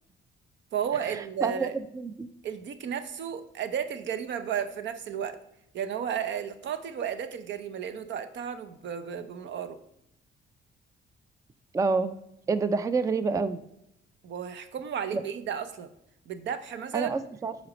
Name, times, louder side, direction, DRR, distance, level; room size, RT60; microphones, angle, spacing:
voice 1, 0.7-1.8 2.4-5.4 5.7-9.8 14.2-15.9 16.3-17.1, right 8 dB, 65° right, 11 dB, 0.7 m, -33 dB
voice 2, 1.9-2.3 11.7-12.1 12.5-13.6 15.1-15.2 16.9-17.5, right 4 dB, 15° right, 13 dB, 0.4 m, -27 dB
5.9 x 4.2 x 5.0 m, 0.79 s
cardioid pair, 90°, 20 cm